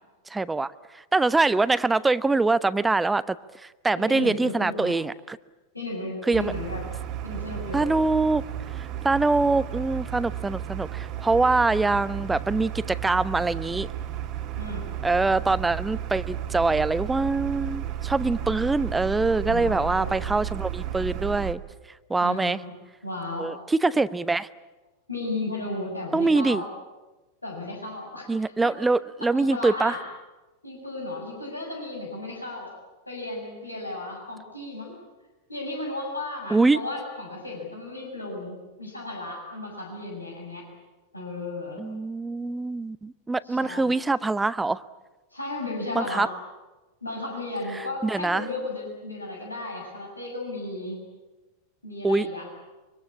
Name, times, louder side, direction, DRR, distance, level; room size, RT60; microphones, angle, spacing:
voice 1, 0.3-0.7 1.1-3.4 3.6-5.4 6.3-6.5 7.7-8.4 9.0-13.9 15.0-21.6 22.1-22.6 23.4-24.5 26.1-26.6 28.3-30.0 36.5-36.8 41.8-44.8 45.9-46.3 48.0-48.4 52.0-52.3, right 3 dB, 10° right, 16 dB, 0.8 m, -24 dB
voice 2, 4.0-5.0 5.7-6.8 7.2-7.9 14.6-14.9 19.5-20.1 22.2-22.7 23.0-23.5 25.1-26.7 27.4-28.7 29.2-30.0 30.6-32.7 33.1-34.9 35.5-40.6 41.1-41.8 43.4-44.0 45.3-46.3 47.0-51.0 51.8-52.5, left 2 dB, 85° left, 0 dB, 6.9 m, -34 dB
sound 1, 6.3-21.5, right 11 dB, 35° right, 1.9 m, -33 dB
25.0 x 24.5 x 8.6 m, 1.1 s
figure-of-eight pair, 90°, 0 cm